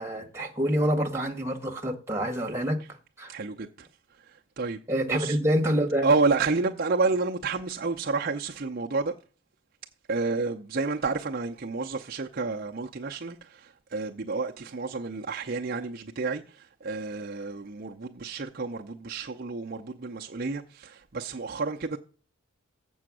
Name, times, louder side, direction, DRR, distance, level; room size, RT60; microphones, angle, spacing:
voice 1, 0.0-3.3 4.9-6.1, equal, 10° right, 1.4 m, -27 dB
voice 2, 3.3-3.9 4.6-4.8 5.1-5.4 6.0-9.1 10.1-22.0, right 4 dB, 45° right, 0.6 m, -30 dB
7.7 x 6.2 x 6.1 m
head